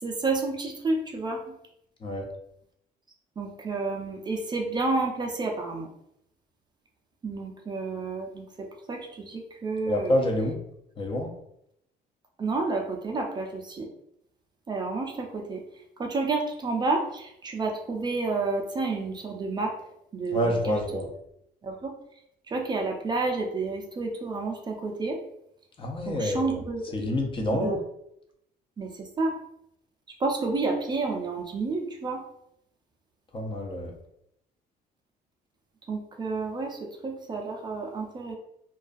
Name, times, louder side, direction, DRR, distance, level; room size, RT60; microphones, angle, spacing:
voice 1, 0.0-1.4 3.4-5.9 7.2-10.1 12.4-13.9 14.7-15.6 16.0-19.7 20.1-21.0 21.6-21.9 22.5-25.2 26.1-26.9 27.5-27.8 28.8-29.4 30.2-32.2 35.9-38.4, right 3 dB, 25° right, 1 dB, 0.4 m, -30 dB
voice 2, 9.9-10.5 11.0-11.3 20.3-21.0 25.8-26.6 26.9-27.8 33.3-33.9, left 1 dB, 30° left, 1 dB, 0.5 m, -27 dB
2.3 x 2.3 x 2.5 m, 0.77 s
cardioid pair, 110°, 17 cm